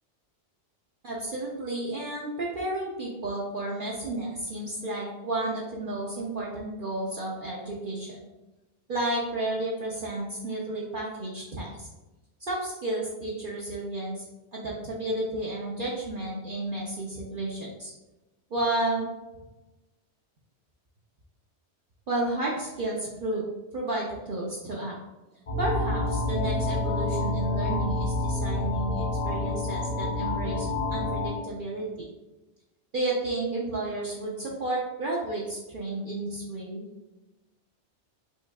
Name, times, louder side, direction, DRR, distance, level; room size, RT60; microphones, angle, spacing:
voice 1, 1.0-8.2 8.9-11.9 12.4-14.2 14.5-17.9 18.5-19.1 22.1-23.4 23.7-24.9 25.6-31.9 32.9-36.9, right 2 dB, 55° right, -5 dB, 0.7 m, -32 dB
sound 1, 25.5-31.3, left 2 dB, 45° left, 0.4 m, -28 dB
4.6 x 2.6 x 2.2 m, 1.0 s
omnidirectional pair, 1.2 m